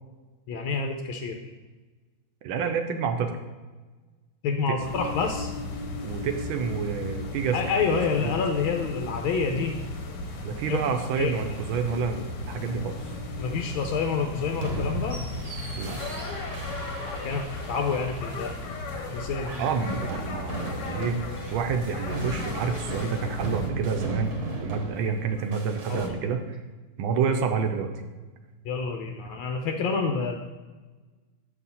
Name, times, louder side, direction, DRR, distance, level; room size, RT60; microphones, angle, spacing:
voice 1, 0.5-1.4 4.4-5.5 7.5-9.7 10.7-10.8 11.2-11.3 13.4-15.2 17.0-18.6 19.1-19.6 25.9-26.4 28.6-30.4, left 5 dB, 80° left, 3 dB, 1.4 m, -28 dB
voice 2, 2.4-3.4 4.7-4.8 6.0-7.7 8.2-8.3 10.4-13.1 15.8-16.0 19.6-21.2 21.5-26.6 27.0-27.9, right 6 dB, 80° right, 5 dB, 1.4 m, -28 dB
sound 1, 4.8-23.7, left 2 dB, 60° left, 1.3 m, -36 dB
sound 2, 14.6-26.1, right 1 dB, 45° right, 1.1 m, -36 dB
7.0 x 5.5 x 4.1 m, 1.3 s
omnidirectional pair, 2.3 m